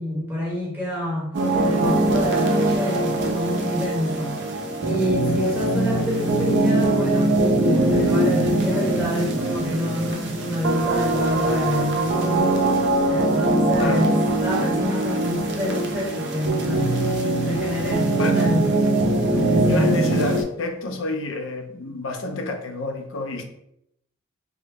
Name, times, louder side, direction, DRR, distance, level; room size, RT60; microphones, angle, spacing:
voice 1, 0.0-4.4 4.8-12.5 13.1-17.0 17.5-18.7 19.4-20.0, left 1 dB, 10° right, -5 dB, 0.8 m, -27 dB
sound 1, 1.3-20.4, right 2 dB, 55° right, 0.5 m, -22 dB
voice 2, 19.7-23.4, left 2 dB, 65° left, 5 dB, 0.5 m, -28 dB
3.4 x 2.1 x 3.3 m, 0.76 s
head